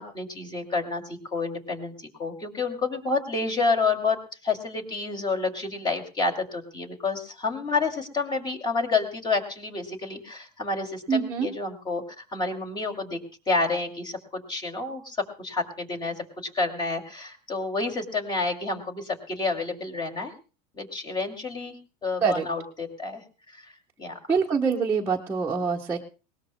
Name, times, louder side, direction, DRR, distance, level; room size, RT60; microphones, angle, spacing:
voice 1, 0.0-4.2 4.4-13.2 13.5-16.2 16.5-20.3 20.7-21.7 22.0-23.2 23.5-23.7 24.0-24.2, left 3 dB, 20° left, 3 dB, 2.6 m, -29 dB
voice 2, 11.1-11.5 22.2-22.5 24.3-26.0, right 5 dB, 10° right, -3 dB, 1.1 m, -25 dB
20.5 x 19.0 x 2.2 m, 0.34 s
supercardioid pair, 130°, 21 cm